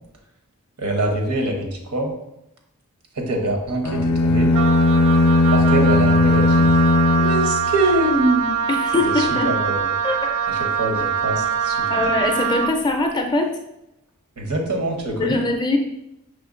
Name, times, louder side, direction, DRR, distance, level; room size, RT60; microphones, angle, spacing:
voice 1, 0.8-2.1 3.2-4.5 5.5-6.7 7.2-8.5 9.0-9.8 10.5-12.1 14.4-15.5, right 1 dB, 80° right, 3 dB, 0.8 m, -24 dB
sound 1, 3.8-8.2, left 2 dB, 80° left, 0.4 m, -17 dB
Wind instrument woodwind instrument, 4.5-12.8, right 7 dB, 60° right, 0.3 m, -24 dB
voice 2, 8.7-9.5 10.0-10.4 11.9-13.5 15.2-15.8, left 2 dB, 20° left, 3 dB, 0.4 m, -22 dB
5.0 x 3.4 x 2.4 m, 0.82 s
head